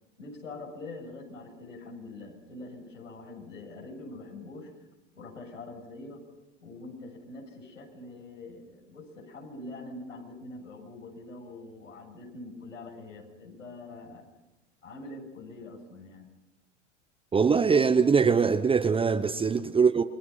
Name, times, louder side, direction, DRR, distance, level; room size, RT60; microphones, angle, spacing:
voice 1, 0.2-4.9 5.1-6.3 6.6-14.3 14.8-16.3, left 2 dB, 90° left, 7.5 m, -44 dB
voice 2, 17.3-20.0, right 5 dB, 15° right, 1.0 m, -22 dB
29.0 x 22.5 x 5.7 m
hypercardioid pair, 95°, 37 cm